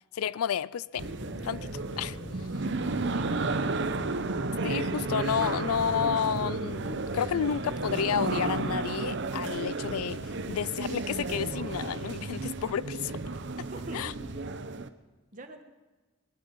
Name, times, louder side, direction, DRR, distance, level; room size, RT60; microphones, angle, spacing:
voice 1, 0.1-1.1 1.4-1.7 2.0-2.5 4.6-13.1 13.9-14.1, left 8 dB, 90° left, 0.4 m, -31 dB
sound 1, 1.0-14.5, left 1 dB, 25° left, 1.7 m, -45 dB
sound 2, 1.0-14.9, right 3 dB, 55° right, 0.8 m, -33 dB
voice 2, 3.1-3.7 13.6-14.2 15.3-15.6, right 1 dB, 35° right, 1.5 m, -43 dB
20.0 x 12.5 x 5.4 m
head